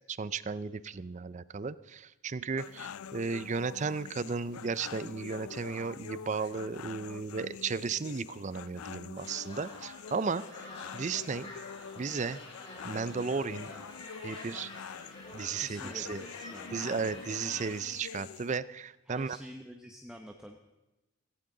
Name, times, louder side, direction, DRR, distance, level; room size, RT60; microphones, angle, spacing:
voice 1, 0.1-11.5 12.0-12.4 12.8-13.7 14.2-14.7 15.3-16.2 16.7-19.4, right 5 dB, 35° right, 17 dB, 0.4 m, -35 dB
sound 1, 2.6-18.6, left 7 dB, 80° left, 0.4 m, -46 dB
sound 2, 9.2-17.9, left 2 dB, 30° left, 5.1 m, -48 dB
voice 2, 15.6-17.4 19.0-20.6, equal, 5° right, 2 dB, 0.8 m, -48 dB
17.0 x 16.0 x 3.8 m, 1.0 s
head